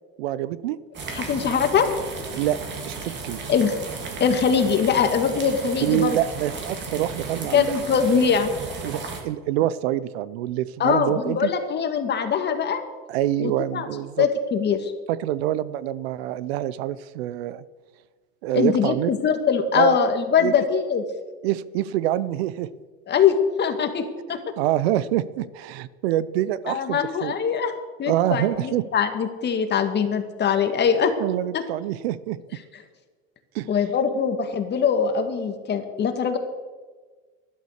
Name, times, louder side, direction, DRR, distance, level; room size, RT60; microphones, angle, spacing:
voice 1, 0.2-0.8 2.3-2.6 2.9-3.5 5.8-7.7 8.8-11.5 13.1-14.3 15.1-17.6 18.4-19.1 19.7-20.0 20.4-20.5 21.4-22.7 24.6-27.4 28.1-28.8 31.2-32.4 33.5-33.7, right 13 dB, 85° right, 18 dB, 0.8 m, -26 dB
sound 1, 0.9-9.2, right 4 dB, 35° right, 3.3 m, -34 dB
voice 2, 1.1-1.9 3.5-3.8 4.2-6.2 7.5-8.5 10.8-12.8 13.4-13.9 14.2-14.9 18.5-21.0 23.1-24.4 26.7-27.7 28.0-31.1 31.5-31.6 33.7-36.4, left 6 dB, 35° left, 7 dB, 1.9 m, -22 dB
12.0 x 11.5 x 6.5 m, 1.4 s
supercardioid pair, 115°, 30 cm